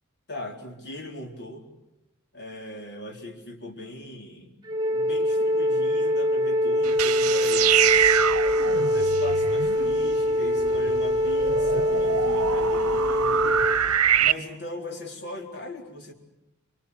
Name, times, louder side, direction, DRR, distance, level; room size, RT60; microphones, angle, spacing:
voice 1, 0.3-1.7 2.3-7.9 8.8-13.7 14.2-16.1, left 1 dB, 50° left, 2 dB, 4.1 m, -39 dB
Wind instrument woodwind instrument, 4.6-13.8, left 1 dB, 20° right, 1.2 m, -24 dB
sound 1, 6.8-14.3, right 9 dB, 85° right, 1.0 m, -25 dB
26.0 x 23.5 x 8.3 m, 0.90 s
head